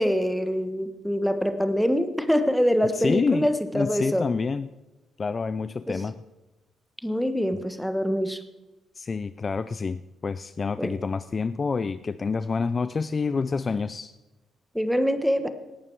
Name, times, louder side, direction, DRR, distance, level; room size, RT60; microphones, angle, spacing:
voice 1, 0.0-4.2 5.9-6.0 7.0-8.4 10.8-10.9 14.7-15.5, equal, ahead, 9 dB, 1.3 m, -24 dB
voice 2, 2.9-4.7 5.2-6.2 8.9-14.2, left 4 dB, 35° left, 14 dB, 0.4 m, -28 dB
18.0 x 8.9 x 4.7 m, 1.1 s
cardioid pair, 90°, 0 cm